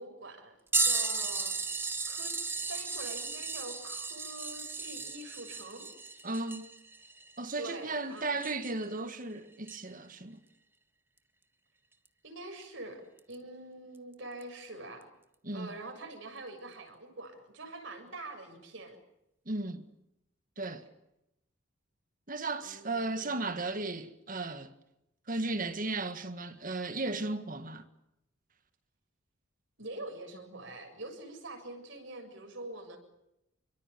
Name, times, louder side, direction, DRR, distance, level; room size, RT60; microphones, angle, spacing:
voice 1, 0.0-5.9 7.6-8.3 12.2-15.1 15.5-19.0 20.7-20.8 22.6-23.4 29.8-33.0, right 2 dB, 65° right, 7.1 m, -45 dB
sound 1, 0.7-8.9 9.7-9.8 12.0-12.1 13.2-13.3 14.4-14.5, right 3 dB, 10° right, 1.8 m, -35 dB
voice 2, 6.2-6.7 7.4-10.4 15.4-15.7 19.5-19.9 20.6-20.9 22.3-24.8 25.3-27.8, right 2 dB, 40° right, 1.9 m, -35 dB
28.5 x 24.0 x 7.0 m
head